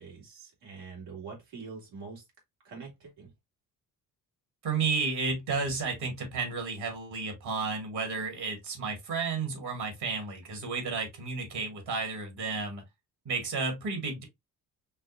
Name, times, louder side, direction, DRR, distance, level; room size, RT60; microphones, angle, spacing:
voice 1, 0.0-2.2 2.6-3.3, right 4 dB, 70° right, 2.3 m, -44 dB
voice 2, 4.6-12.8 13.3-14.2, right 4 dB, 55° right, 2.1 m, -32 dB
5.5 x 2.0 x 2.5 m
hypercardioid pair, 50°, 47 cm